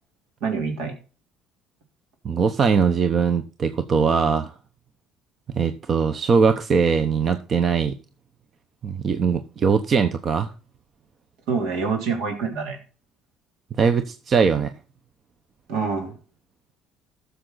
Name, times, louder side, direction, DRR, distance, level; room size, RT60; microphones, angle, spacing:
voice 1, 0.4-1.0 11.5-12.8 15.7-16.1, right 5 dB, 75° right, 3 dB, 3.4 m, -26 dB
voice 2, 2.2-4.6 5.5-8.0 8.8-10.5 13.7-14.7, right 5 dB, 40° right, 9 dB, 0.9 m, -21 dB
12.5 x 6.8 x 3.9 m, 0.36 s
supercardioid pair, 95°, 0 cm